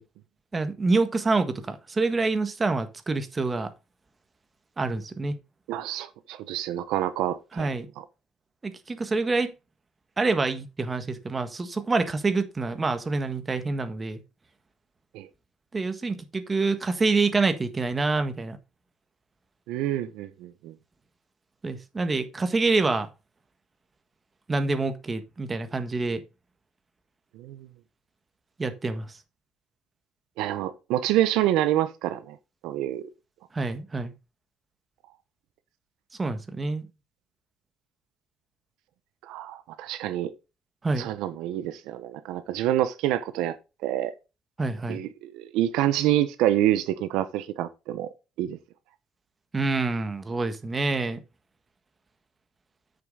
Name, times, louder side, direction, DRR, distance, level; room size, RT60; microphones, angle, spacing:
voice 1, 0.5-3.7 4.8-5.4 7.5-7.9 8.6-9.5 10.2-14.2 15.7-18.6 21.6-23.1 24.5-26.2 28.6-29.2 33.5-34.1 36.2-36.9 40.8-41.1 44.6-45.0 49.5-51.2, right 3 dB, 25° right, 1.5 m, -26 dB
voice 2, 5.7-7.7 15.1-15.3 19.7-20.7 27.4-27.7 30.4-32.3 32.6-33.1 39.3-40.3 41.0-43.5 43.8-44.1 44.9-48.1 48.4-48.6, right 13 dB, 85° right, 0.8 m, -27 dB
8.8 x 6.9 x 3.8 m
cardioid pair, 100°, 0 cm